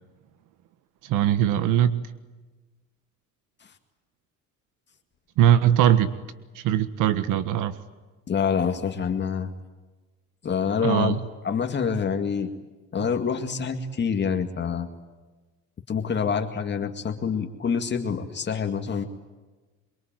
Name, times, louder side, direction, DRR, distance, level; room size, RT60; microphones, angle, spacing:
voice 1, 1.0-2.0 5.4-6.1 6.5-7.7 10.8-11.2, right 11 dB, 85° right, 13 dB, 1.5 m, -21 dB
voice 2, 8.3-9.5 10.4-12.5 12.9-14.9 15.9-19.0, left 6 dB, 35° left, 5 dB, 2.2 m, -26 dB
27.5 x 23.5 x 9.2 m, 1.2 s
cardioid pair, 130°, 31 cm